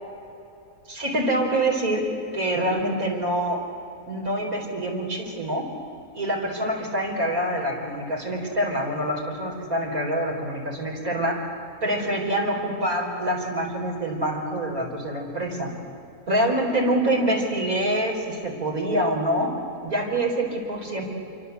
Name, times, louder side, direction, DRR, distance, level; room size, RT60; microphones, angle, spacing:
voice 1, 0.9-2.0 2.3-3.7 4.1-5.7 6.1-11.4 11.8-15.7 16.3-19.6 19.8-21.1, right 1 dB, 70° right, 0 dB, 5.0 m, -25 dB
27.5 x 23.5 x 8.3 m, 2.7 s
omnidirectional pair, 1.5 m